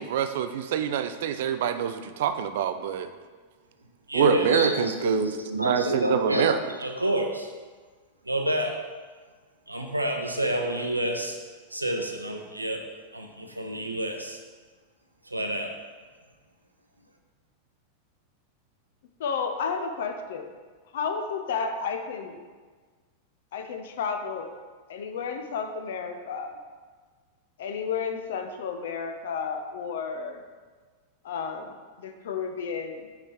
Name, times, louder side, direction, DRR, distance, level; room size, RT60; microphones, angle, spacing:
voice 1, 0.0-3.1 4.1-6.6, right 9 dB, 55° right, 10 dB, 0.4 m, -26 dB
voice 2, 4.1-6.5 6.8-7.5 8.3-8.8 9.7-11.4 11.7-12.8 13.1-14.4 15.3-15.7, equal, 85° right, 2 dB, 0.7 m, -28 dB
voice 3, 19.2-20.5 20.9-22.4 23.5-24.5 24.9-26.6 27.6-30.4 31.2-33.1, left 5 dB, 60° left, 6 dB, 0.7 m, -32 dB
5.9 x 4.9 x 4.4 m, 1.5 s
figure-of-eight pair, 90°, 0 cm